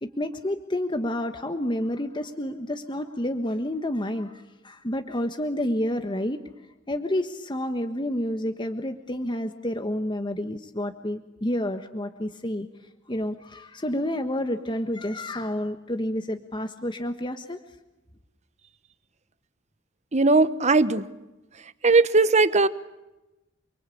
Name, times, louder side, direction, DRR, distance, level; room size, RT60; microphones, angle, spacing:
voice 1, 0.0-6.4 6.9-12.7 13.1-17.6, left 1 dB, 25° left, 6 dB, 1.4 m, -29 dB
voice 2, 20.1-21.1 21.8-22.7, right 3 dB, 35° right, 13 dB, 1.2 m, -19 dB
29.0 x 23.5 x 8.6 m, 0.99 s
head